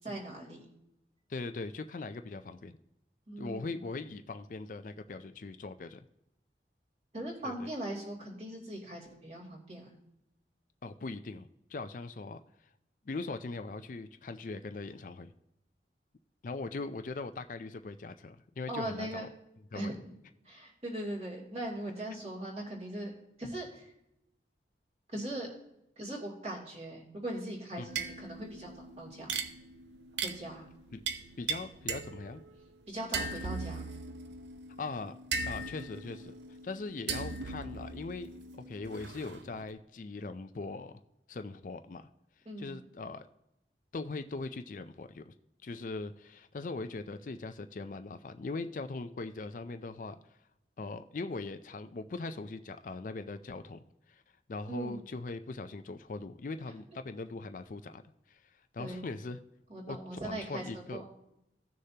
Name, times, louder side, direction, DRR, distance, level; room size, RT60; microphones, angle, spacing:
voice 1, 0.0-0.6 3.3-3.8 7.1-9.9 18.7-19.2 19.7-20.0 20.4-23.1 23.4-23.9 25.1-25.5 26.0-29.4 30.2-30.7 32.9-33.8 42.4-42.7 54.7-55.1 58.8-59.0 59.7-61.1, right 1 dB, 35° right, -3 dB, 2.7 m, -40 dB
voice 2, 1.3-2.7 3.4-6.0 7.4-7.7 10.8-12.7 13.1-15.3 16.4-19.3 19.7-20.0 27.8-27.9 30.9-31.0 31.4-32.4 34.8-35.2 35.4-40.9 41.3-42.1 42.6-43.3 43.9-45.3 45.6-50.4 50.8-54.2 54.5-58.0 58.3-59.4 59.9-60.0 60.2-61.0, left 3 dB, 45° left, 9 dB, 0.4 m, -40 dB
sound 1, 27.9-32.6 33.1-39.7, right 4 dB, 85° right, 0.7 m, -39 dB
16.0 x 6.6 x 2.8 m, 0.84 s
head